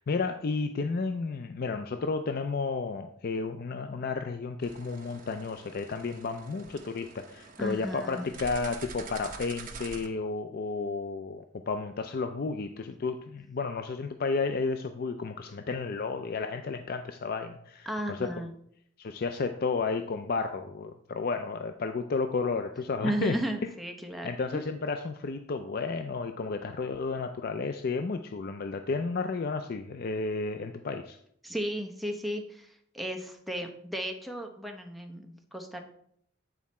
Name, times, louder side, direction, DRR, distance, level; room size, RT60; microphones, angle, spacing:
voice 1, 0.0-18.3 19.0-23.7 24.2-31.2, left 4 dB, 50° left, 7 dB, 0.4 m, -32 dB
sound 1, 4.6-10.1, right 4 dB, 45° right, 1.0 m, -46 dB
voice 2, 7.6-8.3 17.9-18.5 23.0-24.7 31.4-35.8, equal, ahead, 2 dB, 0.9 m, -34 dB
9.2 x 4.7 x 4.2 m, 0.69 s
head